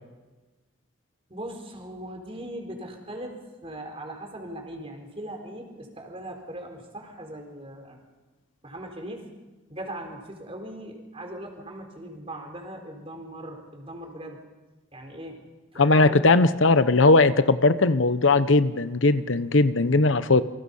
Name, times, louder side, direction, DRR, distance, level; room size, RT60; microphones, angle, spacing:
voice 1, 1.3-8.0 8.6-9.3 9.7-14.4 14.9-15.4 15.7-16.3, right 1 dB, 30° right, 3 dB, 4.4 m, -39 dB
voice 2, 15.8-20.4, left 3 dB, 65° left, 12 dB, 0.9 m, -19 dB
28.5 x 25.0 x 5.6 m, 1.2 s
head